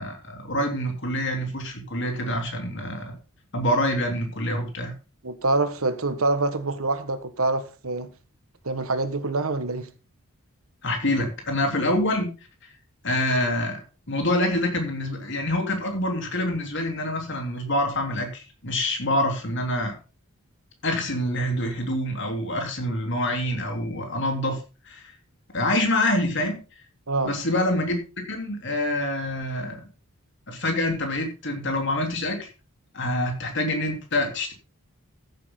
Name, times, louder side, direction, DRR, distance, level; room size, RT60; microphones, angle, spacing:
voice 1, 0.0-3.2 3.5-4.9 10.8-12.3 13.0-13.8 14.1-20.0 20.8-25.1 25.5-26.6 27.2-28.0 28.3-29.8 30.5-32.5 32.9-34.5, left 1 dB, 55° left, 3.5 m, -26 dB
voice 2, 5.2-8.1 8.6-9.9 27.1-27.3, right 2 dB, 75° right, 1.5 m, -25 dB
14.5 x 8.4 x 3.9 m
head